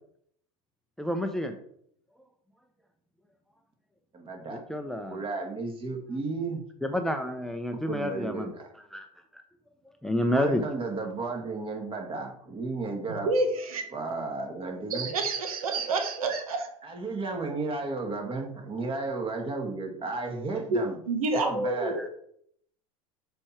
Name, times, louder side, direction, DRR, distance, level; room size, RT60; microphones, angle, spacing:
voice 1, 1.0-1.6 4.5-5.2 6.8-8.5 8.9-9.1 10.0-10.6 22.0-22.1, left 1 dB, ahead, 6 dB, 0.6 m, -29 dB
voice 2, 4.1-4.6 5.1-6.6 7.8-8.7 10.3-13.3 13.9-15.1 16.8-21.0 21.3-22.0, right 3 dB, 30° right, 2 dB, 1.8 m, -33 dB
voice 3, 13.2-13.8 14.9-16.7 20.7-20.8 21.1-22.1, right 3 dB, 85° right, 6 dB, 1.2 m, -28 dB
6.3 x 4.5 x 4.4 m, 0.66 s
hypercardioid pair, 95°, 18 cm